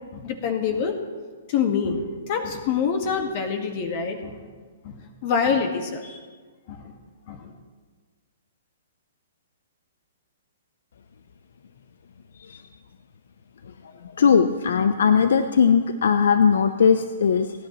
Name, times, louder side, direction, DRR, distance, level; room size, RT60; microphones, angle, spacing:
voice 1, 0.1-0.9 1.5-4.3 4.8-6.2 6.7-6.9 7.3-7.5, left 6 dB, 45° left, 4 dB, 1.6 m, -26 dB
voice 2, 14.2-17.5, left 6 dB, 70° left, 10 dB, 0.6 m, -19 dB
29.0 x 10.0 x 3.1 m, 1.5 s
hypercardioid pair, 130°, 0 cm